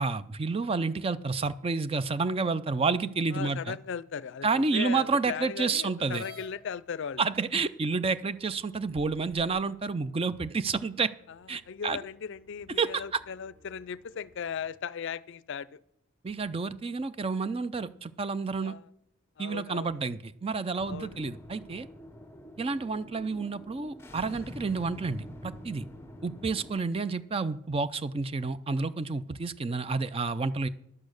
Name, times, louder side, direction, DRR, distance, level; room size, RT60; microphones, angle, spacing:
voice 1, 0.0-3.8 4.4-6.2 7.2-11.1 11.5-12.0 12.8-13.2 16.2-18.7 19.4-21.9 22.6-25.8 26.2-30.7, right 4 dB, 25° right, 0.4 m, -30 dB
voice 2, 3.3-7.2 11.3-15.8 18.6-18.9 19.4-19.9 20.9-21.2, left 7 dB, 60° left, 0.4 m, -37 dB
sound 1, 4.5-14.7, equal, 65° right, 6.0 m, -65 dB
sound 2, 6.1-6.5 7.5-7.6 8.2-8.3 8.9-9.6, left 2 dB, 40° right, 2.2 m, -47 dB
sound 3, 20.8-26.8, left 1 dB, 10° left, 0.8 m, -46 dB
11.0 x 8.4 x 6.4 m
head